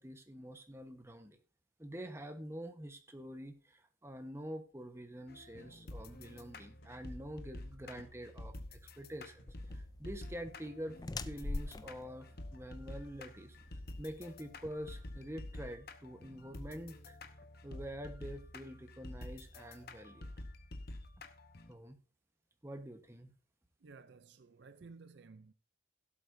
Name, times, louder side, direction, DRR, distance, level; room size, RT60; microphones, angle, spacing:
voice 1, 0.0-1.4 1.8-11.0 11.2-17.2 17.6-20.3 21.7-22.0 22.6-23.3, equal, 10° right, 1.1 m, -46 dB
sound 1, 5.3-21.7, left 1 dB, 50° left, 1.0 m, -49 dB
sound 2, 6.7-19.9, equal, 70° left, 3.7 m, -71 dB
sound 3, 9.5-15.6, left 2 dB, 20° left, 0.4 m, -45 dB
voice 2, 23.8-25.5, right 4 dB, 55° right, 0.5 m, -55 dB
16.5 x 8.0 x 2.7 m
head